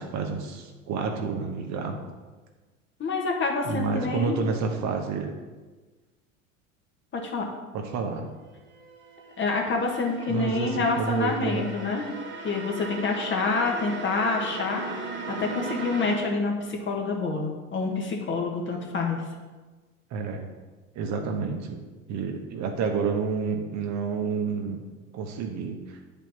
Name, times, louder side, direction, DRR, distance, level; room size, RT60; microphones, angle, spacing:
voice 1, 0.0-2.0 3.6-5.4 7.7-8.3 10.3-11.7 20.1-20.5 20.9-21.8 22.1-24.8 25.1-26.0, right 5 dB, 45° right, 4 dB, 1.2 m, -29 dB
voice 2, 3.0-4.4 7.1-7.5 9.4-12.1 12.4-19.2, left 3 dB, 30° left, 1 dB, 1.6 m, -27 dB
sound 1, 8.4-16.2, right 3 dB, 30° right, 1.4 m, -38 dB
8.9 x 5.3 x 4.3 m, 1.3 s
hypercardioid pair, 85°, 39 cm